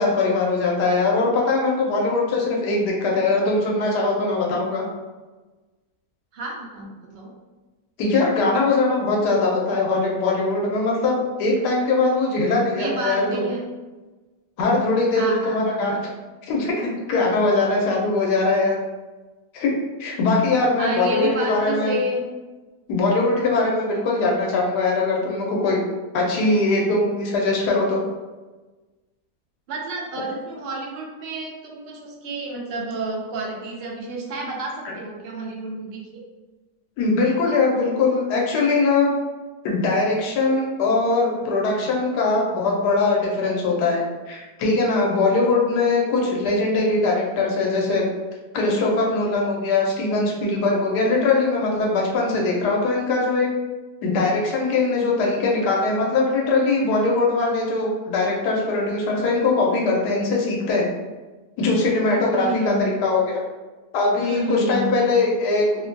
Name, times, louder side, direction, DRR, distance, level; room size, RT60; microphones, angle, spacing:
voice 1, 0.0-4.8 8.0-13.4 14.6-15.9 16.5-18.8 19.5-19.7 20.0-22.0 22.9-25.8 26.1-28.0 37.0-39.1 39.6-48.1 48.5-53.5 54.0-60.9 61.6-63.4 63.9-65.9, left 3 dB, 90° left, -2 dB, 1.2 m, -21 dB
voice 2, 6.3-7.3 12.7-13.6 15.2-16.0 20.8-22.3 29.7-36.1 62.3-63.2 64.2-65.3, right 1 dB, 70° right, -1 dB, 0.6 m, -30 dB
2.9 x 2.1 x 2.6 m, 1.2 s
omnidirectional pair, 1.7 m